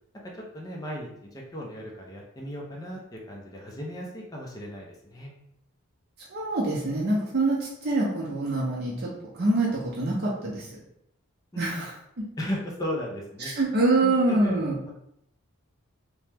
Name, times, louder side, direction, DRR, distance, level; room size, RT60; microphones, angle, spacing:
voice 1, 0.2-5.3 11.5-11.9 12.4-13.5 13.9-14.6 14.8-14.9, equal, 15° left, -2 dB, 0.4 m, -36 dB
voice 2, 6.3-10.7 11.6-11.9 12.2-12.3 13.5-14.8, right 2 dB, 50° right, -5 dB, 0.6 m, -25 dB
2.9 x 2.1 x 3.3 m, 0.78 s
head